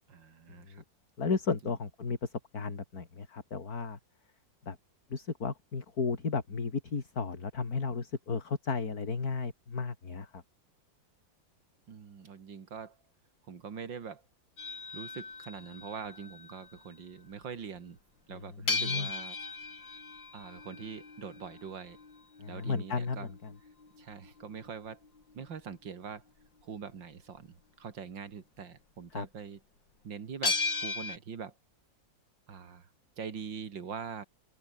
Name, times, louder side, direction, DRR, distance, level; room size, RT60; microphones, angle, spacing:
voice 1, 0.1-0.8 1.6-1.7 11.9-13.0 13.5-14.2 14.9-18.0 18.3-19.4 20.3-22.0 22.5-23.3 24.0-25.0 25.3-26.2 26.6-29.6 30.0-31.6 32.5-32.9 33.2-34.2, right 6 dB, 85° right, 2.9 m, -43 dB
voice 2, 1.2-4.0 4.7-4.8 5.1-10.4 18.6-19.1 22.4-23.3 29.1-29.2, left 4 dB, 55° left, 3.2 m, -34 dB
sound 1, 14.6-16.8 18.7-25.3 30.4-31.2, left 4 dB, 80° left, 4.6 m, -37 dB
open air
omnidirectional pair, 2.0 m